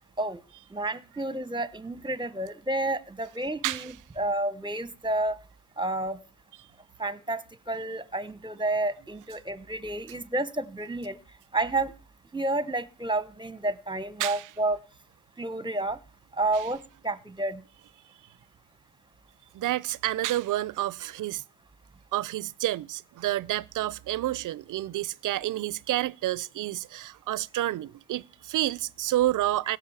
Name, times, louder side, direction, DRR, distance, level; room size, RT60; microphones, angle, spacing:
voice 1, 0.7-5.4 5.8-6.2 7.0-11.2 11.5-11.9 12.3-14.8 15.4-16.0 16.4-17.6, right 2 dB, 15° right, 1.1 m, -30 dB
voice 2, 19.5-21.4 22.1-29.8, right 14 dB, 70° right, 0.6 m, -29 dB
16.5 x 6.3 x 7.2 m
supercardioid pair, 55°, 33 cm